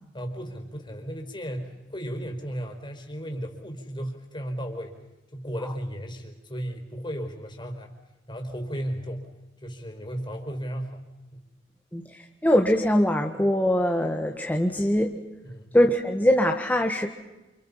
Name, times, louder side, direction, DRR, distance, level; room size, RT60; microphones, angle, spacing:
voice 1, 0.1-4.9 5.3-7.9 8.3-9.3 9.6-11.0 11.3-11.4 15.4-15.8, equal, 25° left, 4 dB, 4.9 m, -35 dB
voice 2, 11.9-15.1 15.7-17.1, equal, 10° left, 3 dB, 1.6 m, -22 dB
29.5 x 29.0 x 5.7 m, 1.1 s
head